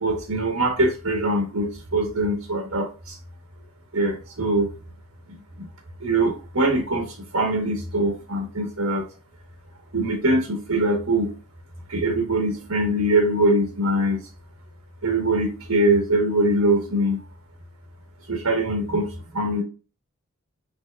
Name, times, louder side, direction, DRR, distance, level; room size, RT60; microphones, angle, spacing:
voice 1, 0.0-3.2 3.9-4.7 5.3-5.7 6.0-9.0 9.9-11.3 11.9-14.2 15.0-17.2 18.3-19.6, right 1 dB, 80° right, 2 dB, 1.1 m, -23 dB
6.1 x 3.4 x 2.3 m, 0.35 s
head